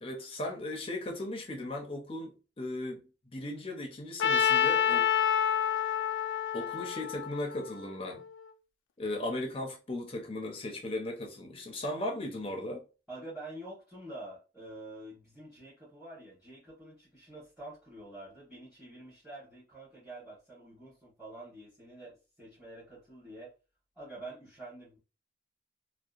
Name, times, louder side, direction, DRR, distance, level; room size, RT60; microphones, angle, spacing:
voice 1, 0.0-3.0 3.3-5.1 6.5-8.2 9.0-12.8, left 1 dB, 30° left, 0.5 m, -37 dB
Trumpet, 4.2-8.2, left 9 dB, 90° left, 0.3 m, -28 dB
voice 2, 13.1-23.5 23.9-25.0, right 2 dB, 5° right, 1.1 m, -47 dB
2.7 x 2.0 x 2.4 m
head